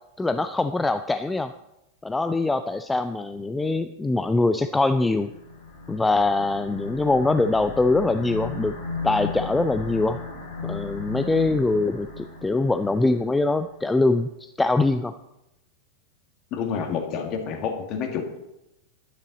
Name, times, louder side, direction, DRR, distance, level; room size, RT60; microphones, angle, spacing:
voice 1, 0.2-1.5 2.0-5.3 5.9-8.8 9.0-10.2 10.6-15.1, left 2 dB, 10° left, 10 dB, 0.4 m, -23 dB
sound 1, 5.0-13.6, left 4 dB, 75° left, 4.7 m, -36 dB
voice 2, 16.5-18.4, left 6 dB, 40° left, 3 dB, 2.0 m, -29 dB
11.0 x 9.7 x 4.0 m, 0.90 s
figure-of-eight pair, 90°, 0 cm